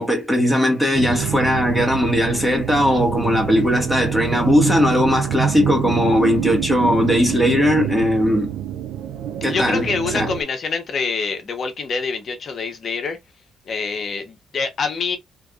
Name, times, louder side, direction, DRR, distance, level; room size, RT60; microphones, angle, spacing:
voice 1, 0.0-8.5 9.4-9.9 10.1-10.3, left 1 dB, 5° right, 1.5 m, -18 dB
sound 1, 0.9-10.4, right 10 dB, 85° right, 0.5 m, -26 dB
voice 2, 9.5-13.2 13.7-15.2, left 4 dB, 50° left, 1.1 m, -25 dB
3.4 x 3.2 x 2.4 m
cardioid pair, 90°, 0 cm